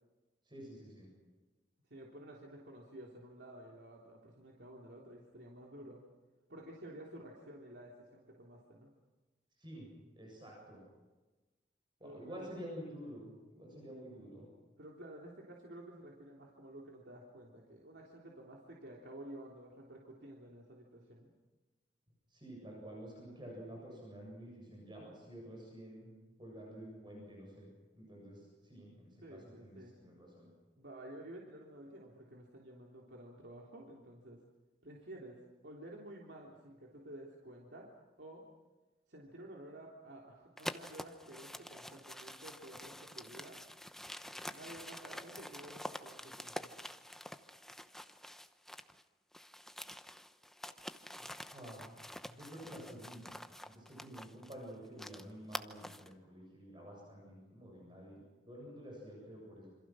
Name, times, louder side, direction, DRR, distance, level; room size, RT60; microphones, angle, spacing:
voice 1, 0.5-1.1 9.6-9.9 10.2-10.8 12.0-14.4 22.3-26.1 26.4-27.7 28.0-30.5 51.5-53.3 53.7-59.7, equal, 30° right, -2 dB, 8.0 m, -50 dB
voice 2, 1.9-6.0 6.5-8.9 12.0-12.5 14.8-21.3 29.2-29.9 30.8-34.4 34.8-35.4 35.6-37.9 38.2-38.4 39.1-43.6 44.5-46.7 51.1-51.3, right 1 dB, 75° right, -2 dB, 3.4 m, -52 dB
sound 1, 40.6-49.0 49.3-56.1, equal, ahead, 0.9 m, -47 dB
28.0 x 26.0 x 6.3 m, 1.2 s
head